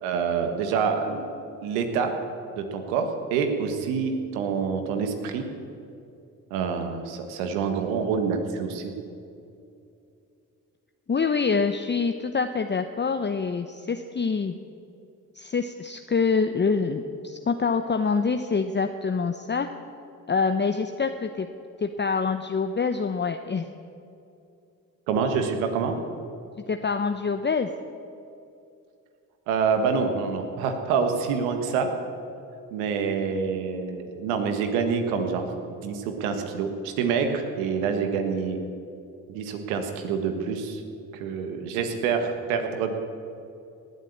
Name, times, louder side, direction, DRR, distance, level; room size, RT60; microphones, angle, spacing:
voice 1, 0.0-1.3 1.6-2.1 2.6-5.5 6.5-8.9 25.1-26.0 29.5-31.9 32.7-35.5 35.8-38.6 39.3-40.8 41.1-42.9, right 6 dB, 90° right, 6 dB, 1.6 m, -26 dB
voice 2, 11.1-14.5 15.3-19.7 20.3-21.5 21.8-23.7 26.7-27.7, left 5 dB, 25° left, 7 dB, 0.9 m, -25 dB
18.5 x 8.3 x 8.5 m, 2.6 s
hypercardioid pair, 50°, 42 cm